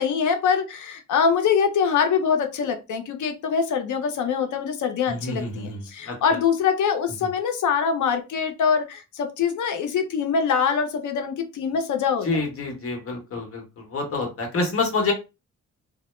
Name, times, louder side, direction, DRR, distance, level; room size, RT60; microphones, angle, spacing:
voice 1, 0.0-12.3, left 6 dB, 85° left, 0.6 m, -24 dB
voice 2, 5.1-6.4 7.2-7.3 12.2-15.1, left 3 dB, 50° left, 0.9 m, -28 dB
2.2 x 2.0 x 3.0 m
wide cardioid pair, 145°, 29 cm